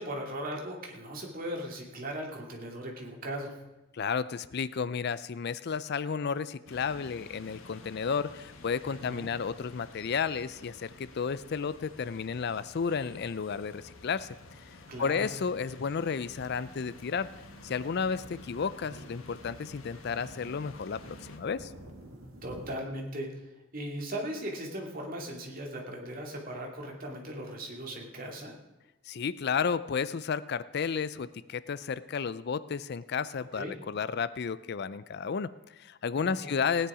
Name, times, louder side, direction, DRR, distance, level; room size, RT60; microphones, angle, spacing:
voice 1, 0.0-3.5 9.0-9.3 14.9-15.3 18.8-19.1 22.4-28.5 33.5-33.7 36.2-36.6, right 1 dB, 45° right, 0 dB, 2.5 m, -38 dB
voice 2, 3.9-14.3 15.0-17.3 17.6-21.7 29.1-36.9, left 6 dB, 50° left, 16 dB, 0.4 m, -32 dB
sound 1, 6.7-21.4, left 2 dB, 75° left, 1.4 m, -51 dB
sound 2, 16.3-22.8, right 1 dB, 85° right, 2.2 m, -52 dB
17.5 x 9.9 x 4.9 m, 1.0 s
head